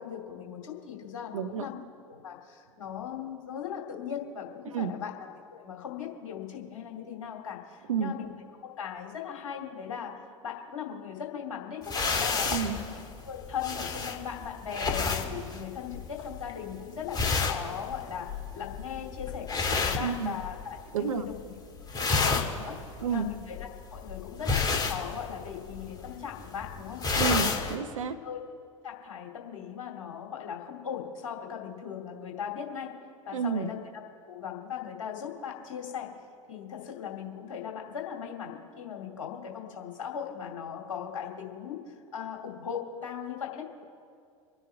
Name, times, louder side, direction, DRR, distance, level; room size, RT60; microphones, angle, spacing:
voice 1, 0.0-1.7 2.1-8.3 8.8-12.5 12.8-13.0 13.2-21.4 22.0-27.0 27.4-27.6 28.2-28.4 28.8-32.9 33.3-33.8 34.3-36.1 36.5-43.7, left 8 dB, 65° left, 1 dB, 2.5 m, -39 dB
voice 2, 1.3-1.7 4.7-4.9 7.9-8.1 12.5-12.8 20.0-20.3 20.9-21.3 23.0-23.3 27.1-28.2 33.3-33.7, right 7 dB, 70° right, 9 dB, 0.9 m, -30 dB
sound 1, 11.8-20.8 21.1-21.5 21.8-27.7, left 4 dB, 25° left, 2.0 m, -31 dB
27.5 x 9.9 x 3.3 m, 2.3 s
figure-of-eight pair, 80°, 17 cm